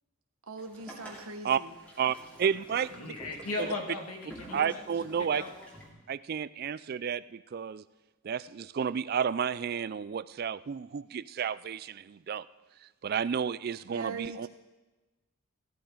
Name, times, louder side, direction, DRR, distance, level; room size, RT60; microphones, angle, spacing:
voice 1, 0.5-1.7 13.9-14.5, right 3 dB, 75° right, 5 dB, 1.3 m, -40 dB
Boat Water vehicle, 0.6-5.9, equal, 5° left, 2.5 m, -49 dB
voice 2, 2.0-3.1 3.6-3.7 4.5-5.4 6.1-7.8 8.2-12.5 13.0-14.5, right 7 dB, 45° right, 17 dB, 0.3 m, -31 dB
voice 3, 2.9-4.8 5.3-5.5, left 3 dB, 90° left, 3 dB, 2.0 m, -37 dB
16.0 x 13.5 x 3.8 m, 1.1 s
head